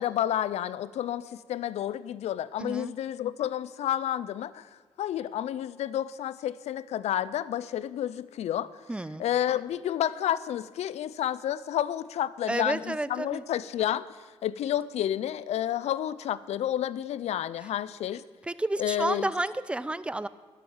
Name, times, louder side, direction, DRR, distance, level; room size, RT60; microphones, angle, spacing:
voice 1, 0.0-4.7 5.0-8.8 9.2-14.2 14.4-18.2 18.8-19.3, left 11 dB, 80° left, 18 dB, 0.5 m, -30 dB
voice 2, 2.6-2.9 8.9-9.2 12.5-13.4 18.4-20.3, right 2 dB, 10° right, 16 dB, 0.6 m, -31 dB
12.0 x 10.5 x 7.2 m, 1.4 s
cardioid pair, 80°, 11 cm